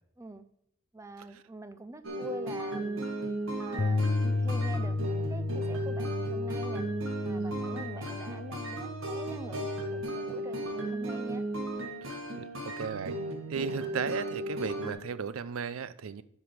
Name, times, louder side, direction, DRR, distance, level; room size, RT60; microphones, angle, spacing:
voice 1, 0.9-3.1 3.6-4.0 4.4-6.9 7.2-11.4, right 1 dB, 15° right, 0.5 m, -44 dB
sound 1, 2.0-14.9, right 1 dB, 70° right, 1.8 m, -35 dB
Bass guitar, 3.8-10.0, left 3 dB, 40° left, 0.4 m, -33 dB
voice 2, 7.4-7.7 12.4-13.2 13.5-16.2, right 6 dB, 90° right, 0.5 m, -36 dB
10.5 x 5.5 x 4.9 m
head